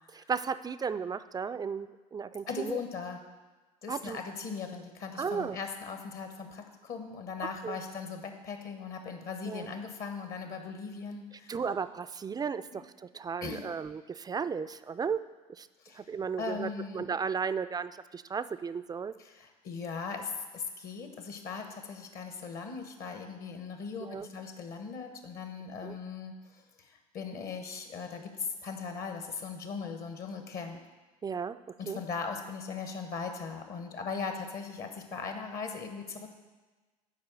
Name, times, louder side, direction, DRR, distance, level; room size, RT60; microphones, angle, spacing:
voice 1, 0.1-2.8 3.9-4.2 5.2-5.6 7.6-7.8 9.5-9.7 11.5-15.2 15.5-15.7 15.9-19.1 24.0-24.3 25.8-26.0 31.2-31.6 31.9-32.0, right 6 dB, 20° right, 13 dB, 0.3 m, -35 dB
voice 2, 2.5-3.2 3.8-11.6 12.7-12.8 13.4-13.7 15.8-16.1 16.4-17.1 19.2-30.8 31.8-36.3, left 5 dB, 50° left, 5 dB, 1.1 m, -39 dB
7.4 x 4.8 x 6.1 m, 1.3 s
hypercardioid pair, 70°, 20 cm